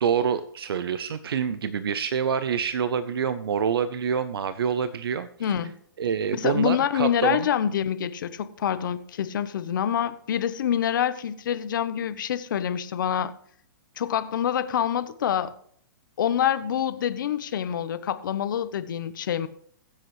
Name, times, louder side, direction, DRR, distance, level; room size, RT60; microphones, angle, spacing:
voice 1, 0.0-5.5 6.0-7.5, right 7 dB, 85° right, 13 dB, 0.7 m, -26 dB
voice 2, 5.4-5.7 6.4-13.3 14.0-15.5 16.2-19.5, left 9 dB, 60° left, 13 dB, 0.9 m, -26 dB
22.0 x 7.8 x 3.2 m, 0.63 s
hypercardioid pair, 160°, 12 cm